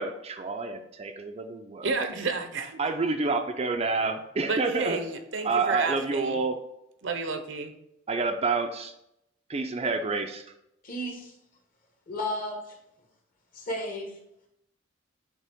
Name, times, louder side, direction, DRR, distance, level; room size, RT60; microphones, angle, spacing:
voice 1, 0.0-1.9 2.8-5.0 5.4-6.5 8.1-8.9 9.5-10.4, right 3 dB, 30° right, 6 dB, 0.4 m, -28 dB
voice 2, 1.8-2.8 4.5-6.4 7.0-7.7, right 4 dB, 65° right, 8 dB, 0.7 m, -31 dB
voice 3, 10.8-11.3 12.1-12.7 13.5-14.1, left 1 dB, 45° left, 0 dB, 1.4 m, -33 dB
8.2 x 3.3 x 3.5 m, 0.80 s
head